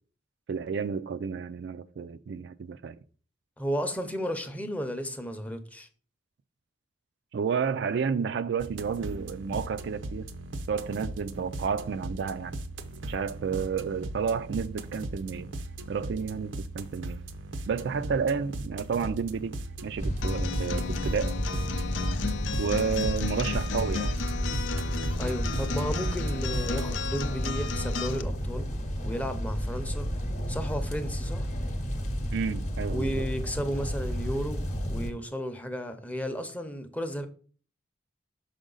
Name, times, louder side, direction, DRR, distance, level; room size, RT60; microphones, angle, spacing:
voice 1, 0.5-3.0 7.3-10.3 10.7-12.5 13.1-15.5 15.9-17.2 17.7-19.5 19.8-21.4 22.6-24.1 32.3-33.3, right 6 dB, 65° right, 0.3 m, -31 dB
voice 2, 3.6-5.9 25.2-28.7 29.0-30.1 30.5-31.5 32.9-34.6 34.9-37.3, equal, 10° left, 0.6 m, -33 dB
sound 1, 8.6-26.9, right 2 dB, 90° right, 0.7 m, -39 dB
sound 2, 20.0-35.1, equal, 40° left, 0.9 m, -32 dB
Acoustic guitar, 20.2-28.2, left 6 dB, 80° left, 0.5 m, -35 dB
6.2 x 5.0 x 3.8 m
head